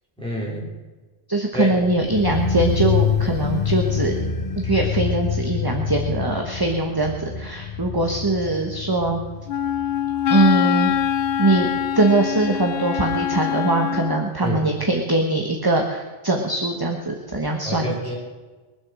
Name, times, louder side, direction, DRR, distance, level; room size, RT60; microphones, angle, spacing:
voice 1, 0.2-0.7 1.5-1.7 14.4-14.6 17.6-18.2, left 1 dB, 5° left, -5 dB, 4.5 m, -27 dB
voice 2, 1.3-4.1 4.5-9.2 10.3-10.9 11.4-11.7 11.9-17.9, right 2 dB, 20° right, 2 dB, 1.3 m, -22 dB
sound 1, 1.5-12.6 12.8-12.9, left 7 dB, 45° left, 1.1 m, -27 dB
Wind instrument woodwind instrument, 9.5-14.3, left 9 dB, 60° left, 0.7 m, -23 dB
22.5 x 8.0 x 6.3 m, 1.3 s
omnidirectional pair, 1.2 m